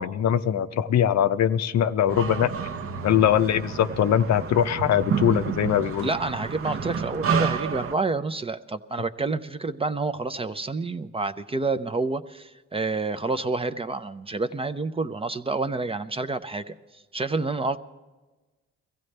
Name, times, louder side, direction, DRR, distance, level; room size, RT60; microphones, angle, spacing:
voice 1, 0.0-2.5 3.0-6.1, left 10 dB, 60° left, 10 dB, 0.6 m, -22 dB
sound 1, 2.1-7.9, right 6 dB, 50° right, 0.8 m, -29 dB
voice 2, 6.0-17.8, right 3 dB, 20° right, 11 dB, 0.5 m, -29 dB
22.5 x 15.5 x 3.3 m, 1.2 s
cardioid pair, 90°, 30 cm